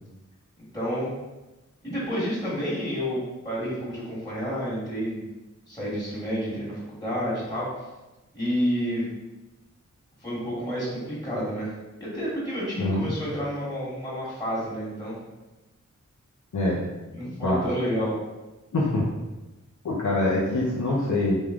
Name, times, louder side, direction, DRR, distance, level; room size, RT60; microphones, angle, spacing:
voice 1, 0.7-1.1 1.8-5.2 5.7-7.7 8.3-9.1 10.2-11.7 12.0-15.2 17.1-18.2, equal, 15° left, -9 dB, 1.5 m, -29 dB
voice 2, 18.7-19.1 19.8-21.4, left 2 dB, 75° left, -5 dB, 0.7 m, -24 dB
3.5 x 3.1 x 3.6 m, 1.1 s
wide cardioid pair, 70°, 30 cm